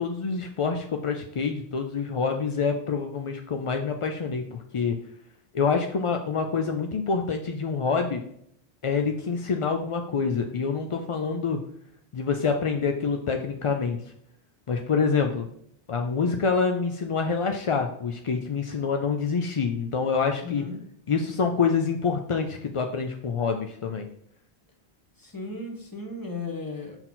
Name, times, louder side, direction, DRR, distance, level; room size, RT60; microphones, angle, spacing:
voice 1, 0.0-5.0 5.5-8.2 8.8-11.6 12.1-14.0 14.7-15.5 15.9-20.6 21.1-24.1, left 5 dB, 50° left, 4 dB, 0.4 m, -26 dB
voice 2, 20.4-20.8 25.2-27.0, left 3 dB, 20° left, 1 dB, 1.1 m, -35 dB
5.8 x 4.5 x 3.8 m, 0.68 s
omnidirectional pair, 1.1 m